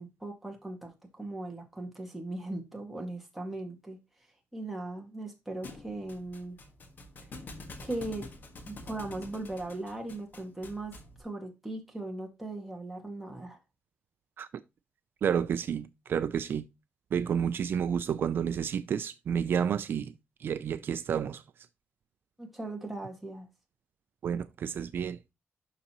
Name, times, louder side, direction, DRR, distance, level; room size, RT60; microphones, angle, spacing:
voice 1, 0.0-4.0 4.5-6.6 7.8-8.3 8.6-10.9 11.2-13.6 22.4-23.5, right 2 dB, 5° right, 2.0 m, -38 dB
Thump thud, 5.6-11.2, left 2 dB, 50° left, 1.5 m, -47 dB
voice 2, 15.2-16.6 17.1-20.1 20.4-21.4 24.2-25.3, right 8 dB, 60° right, 0.4 m, -30 dB
11.5 x 3.9 x 3.0 m
wide cardioid pair, 150°, 4 cm